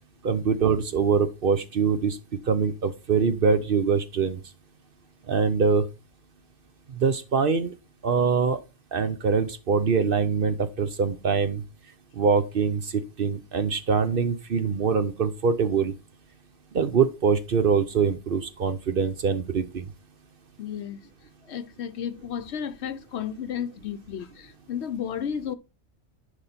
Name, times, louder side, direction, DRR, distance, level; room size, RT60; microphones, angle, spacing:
voice 1, 0.2-2.2 2.5-4.4 5.3-5.8 7.0-7.7 8.0-8.6 8.9-11.6 12.2-12.9 13.2-15.9 16.7-19.8, right 5 dB, 50° right, 0.9 m, -23 dB
voice 2, 20.6-21.0 21.5-25.5, left 8 dB, 65° left, 0.9 m, -33 dB
10.5 x 5.0 x 4.3 m
omnidirectional pair, 1.3 m